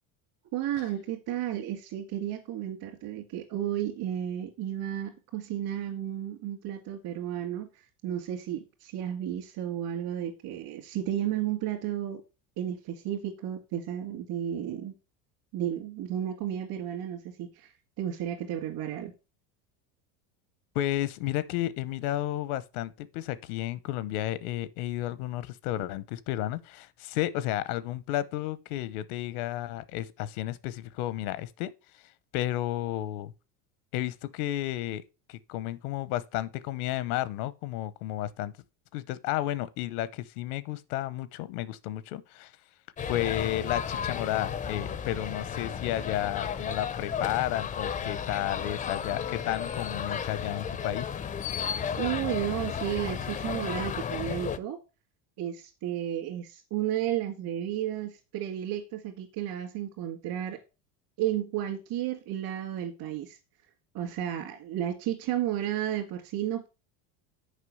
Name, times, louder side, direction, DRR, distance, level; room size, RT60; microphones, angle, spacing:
voice 1, 0.5-7.7 8.0-12.2 12.6-14.9 15.5-19.1 52.0-54.8 55.4-60.6 61.2-63.4 63.9-66.7, right 11 dB, 60° right, 2.2 m, -33 dB
voice 2, 20.7-31.7 32.3-33.3 33.9-35.0 35.3-38.5 38.9-42.5 43.0-51.1, left 14 dB, 80° left, 0.8 m, -32 dB
sound 1, 43.0-54.6, left 7 dB, 20° left, 0.4 m, -33 dB
6.7 x 5.2 x 6.3 m
supercardioid pair, 120°, 43 cm